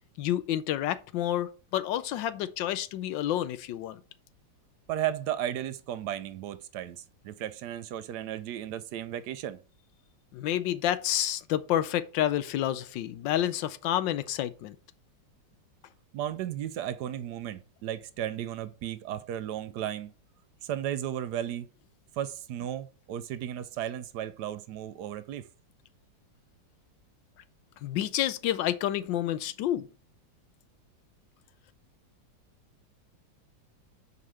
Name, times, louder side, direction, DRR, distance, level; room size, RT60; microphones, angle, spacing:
voice 1, 0.2-4.0 10.3-14.8 27.8-29.9, left 12 dB, 80° left, 1.3 m, -29 dB
voice 2, 4.9-9.6 16.1-20.1 20.6-21.7 22.2-25.5, right 11 dB, 75° right, 1.0 m, -34 dB
5.5 x 5.0 x 6.3 m
omnidirectional pair, 2.0 m